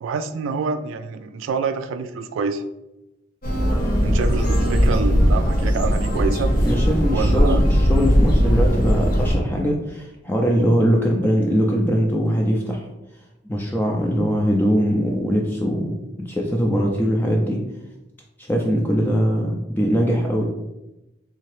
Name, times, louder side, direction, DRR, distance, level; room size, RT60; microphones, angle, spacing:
voice 1, 0.0-2.6 4.0-6.5 7.1-7.6, right 5 dB, 90° right, 10 dB, 0.3 m, -27 dB
sound 1, 3.4-9.4, equal, 50° left, 0.8 m, -18 dB
voice 2, 6.6-12.9 13.4-17.6 18.4-20.4, equal, 10° left, -1 dB, 0.3 m, -21 dB
3.3 x 2.8 x 3.2 m, 0.95 s
head